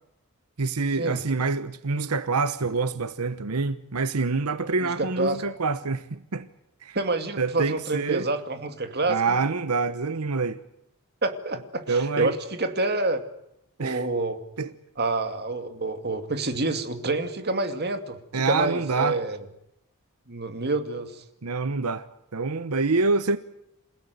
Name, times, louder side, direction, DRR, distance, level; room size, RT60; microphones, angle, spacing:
voice 1, 0.6-6.5 6.8-7.0 7.4-8.2 9.1-10.6 11.9-12.3 13.8-14.0 14.6-14.7 18.3-19.2 21.4-22.1 22.3-23.4, right 4 dB, 85° right, 1.0 m, -26 dB
voice 2, 4.8-5.4 6.9-9.4 11.2-13.2 13.8-14.4 15.0-19.4 20.3-21.2, right 2 dB, 45° right, 2.4 m, -28 dB
28.5 x 16.5 x 9.4 m
head